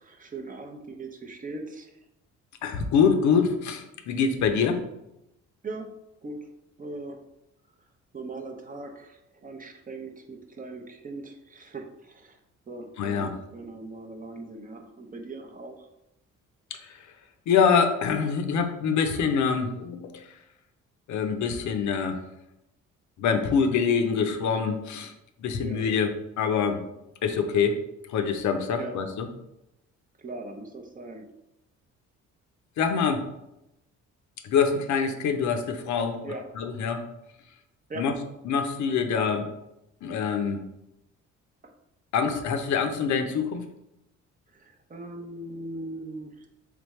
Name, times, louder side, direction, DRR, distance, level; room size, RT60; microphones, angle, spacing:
voice 1, 0.0-2.0 5.6-5.9 6.2-6.4 6.8-7.2 8.1-12.4 12.7-15.9 25.6-25.9 28.7-29.0 30.2-31.2 36.2-36.5 37.9-38.1 44.5-46.5, right 2 dB, 30° right, 3 dB, 0.6 m, -40 dB
voice 2, 2.6-4.8 13.0-13.3 17.5-20.2 21.1-22.2 23.2-25.1 25.4-26.1 26.4-26.8 27.2-27.8 28.1-29.3 32.8-33.3 34.4-36.2 36.6-37.1 38.0-38.1 38.5-39.5 40.0-40.6 42.1-43.6, left 6 dB, 70° left, 6 dB, 0.6 m, -25 dB
3.5 x 3.4 x 3.1 m, 0.87 s
cardioid pair, 90°, 30 cm